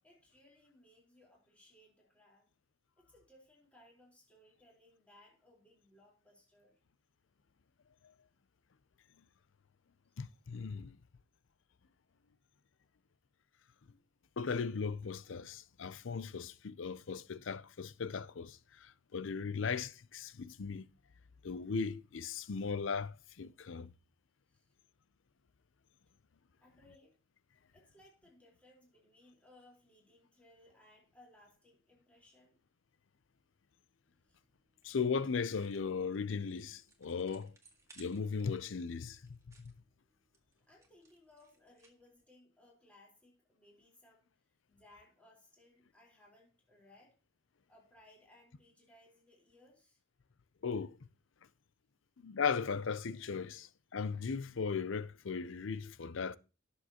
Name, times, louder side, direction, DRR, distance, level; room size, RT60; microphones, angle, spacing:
voice 1, 0.0-2.5 3.0-6.8 24.5-24.7 26.6-27.2 27.7-32.6 34.3-34.4 40.6-47.2 47.7-50.0, left 1 dB, 5° left, 4.0 m, -64 dB
voice 2, 10.2-11.0 14.4-20.9 21.4-23.9 34.8-37.6 38.0-39.2 39.6-39.7 50.6-51.0 52.2-56.4, left 5 dB, 70° left, 0.6 m, -37 dB
sound 1, 34.0-42.2, right 3 dB, 15° right, 1.9 m, -67 dB
17.5 x 7.1 x 2.9 m
head